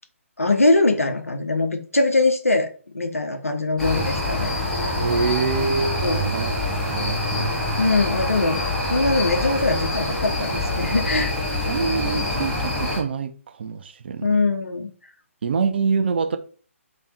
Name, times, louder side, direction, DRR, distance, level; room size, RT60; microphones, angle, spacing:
voice 1, 0.4-4.5 4.8-4.9 6.0-6.3 7.8-8.6 8.9-11.3 14.2-14.9, left 2 dB, 80° left, 0.9 m, -22 dB
sound 1, 3.8-13.0, left 1 dB, 5° left, 1.1 m, -25 dB
voice 2, 5.0-6.5 6.9-7.5 11.7-14.4 15.4-16.4, right 5 dB, 50° right, 0.6 m, -25 dB
3.4 x 3.4 x 4.2 m
figure-of-eight pair, 135°, 8 cm